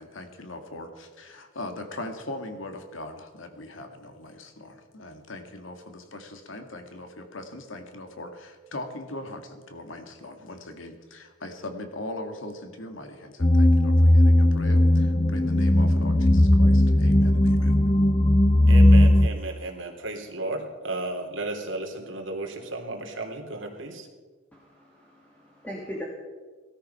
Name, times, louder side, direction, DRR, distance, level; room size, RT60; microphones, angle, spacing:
voice 1, 0.0-17.7, left 1 dB, 80° left, 6 dB, 2.1 m, -40 dB
sound 1, 13.4-19.3, left 1 dB, 25° left, 0.6 m, -18 dB
voice 2, 18.7-24.1, right 2 dB, 65° right, 1 dB, 3.2 m, -34 dB
voice 3, 24.5-26.0, equal, 10° left, -3 dB, 2.6 m, -39 dB
18.5 x 13.5 x 5.6 m, 1.4 s
head